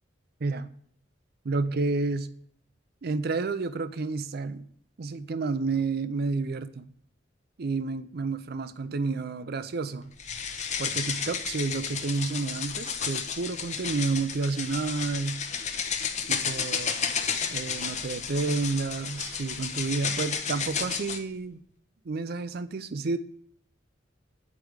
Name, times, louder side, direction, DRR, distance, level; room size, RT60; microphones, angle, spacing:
voice 1, 1.4-2.3 3.0-4.6 5.0-6.9 7.6-10.1 10.8-15.4 16.3-17.2 17.5-21.6 22.0-23.2, right 3 dB, 55° right, 0.5 m, -30 dB
sound 1, 10.2-21.2, left 6 dB, 40° left, 0.8 m, -32 dB
8.3 x 4.9 x 4.7 m
head